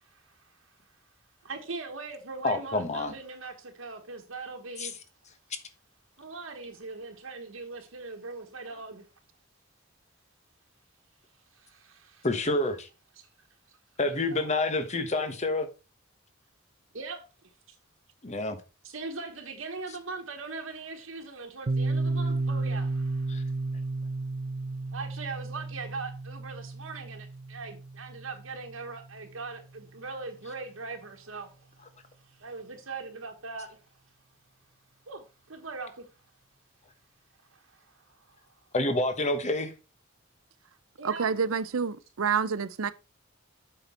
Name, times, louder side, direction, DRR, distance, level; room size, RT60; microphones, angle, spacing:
voice 1, 1.4-5.0 6.2-9.1 11.5-12.3 14.1-14.5 16.9-17.2 18.8-23.3 24.9-31.5 32.4-33.8 35.1-36.0 37.5-38.2 41.0-41.3, right 3 dB, 70° right, 1.3 m, -40 dB
voice 2, 2.4-3.1 4.8-4.9 12.2-12.9 14.0-15.7 18.2-18.6 23.3-23.4 38.7-39.7, left 2 dB, 35° left, 1.2 m, -28 dB
Piano, 21.7-29.1, right 3 dB, 50° right, 0.5 m, -32 dB
voice 3, 41.0-42.9, right 6 dB, 90° right, 0.6 m, -28 dB
8.0 x 5.7 x 4.3 m
head